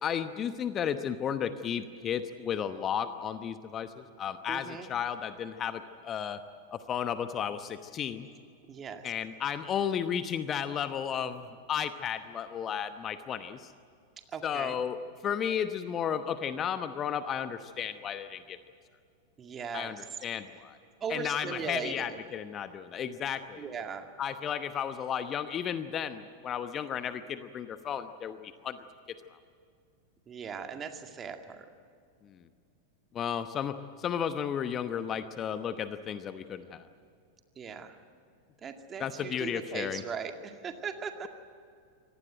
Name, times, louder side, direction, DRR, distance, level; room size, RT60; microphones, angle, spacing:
voice 1, 0.0-6.4 6.7-8.3 9.0-13.7 14.4-18.6 19.7-20.8 21.1-23.7 24.2-28.8 29.1-29.2 32.2-32.4 33.1-36.9 39.0-40.0, left 8 dB, 25° left, 11 dB, 1.0 m, -33 dB
voice 2, 4.5-4.9 8.7-9.0 14.3-14.8 19.4-20.0 21.0-22.2 23.6-24.1 30.3-31.7 37.6-38.0 38.6-41.3, right 6 dB, 25° right, 6 dB, 2.1 m, -38 dB
25.5 x 18.5 x 9.1 m, 2.3 s
figure-of-eight pair, 90°, 0 cm